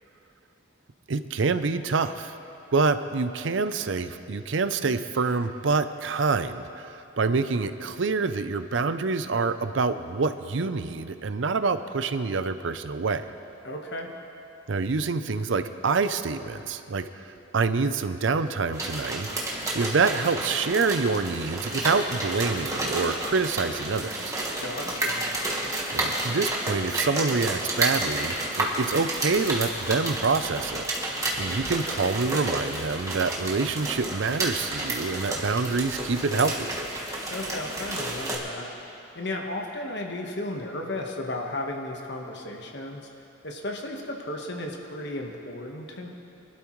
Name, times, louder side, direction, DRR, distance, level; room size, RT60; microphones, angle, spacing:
voice 1, 1.1-2.4 2.7-13.2 14.7-19.3 19.7-24.4 25.9-30.8 31.4-36.8, right 4 dB, 70° right, 11 dB, 0.6 m, -26 dB
voice 2, 13.6-14.1 24.6-25.4 37.3-38.7 39.1-43.1 43.4-46.1, left 1 dB, 60° left, 1 dB, 1.4 m, -34 dB
sound 1, 18.7-38.4, right 1 dB, 15° right, 1.5 m, -31 dB
24.0 x 12.0 x 3.2 m, 2.9 s
head